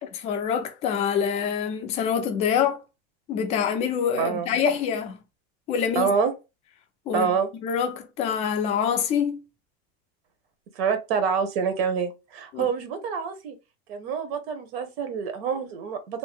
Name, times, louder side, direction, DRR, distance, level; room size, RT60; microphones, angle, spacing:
voice 1, 0.0-2.8 3.3-5.2 5.7-6.1 7.1-7.3 7.6-9.4 12.5-12.7, left 7 dB, 20° left, 0.3 m, -25 dB
voice 2, 4.2-4.6 5.9-6.3 7.1-7.5 10.8-13.5 13.9-16.2, right 6 dB, 65° right, 0.8 m, -26 dB
2.6 x 2.1 x 3.5 m
supercardioid pair, 160°, 32 cm